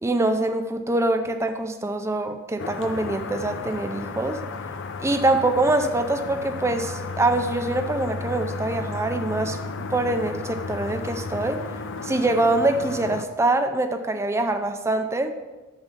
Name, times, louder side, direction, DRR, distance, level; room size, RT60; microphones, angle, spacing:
voice 1, 0.0-4.4 5.0-9.6 9.9-11.6 12.0-15.3, right 2 dB, 15° right, 7 dB, 0.4 m, -24 dB
sound 1, 2.6-13.2, left 4 dB, 60° left, 0.6 m, -33 dB
6.8 x 5.6 x 5.9 m, 1.1 s
head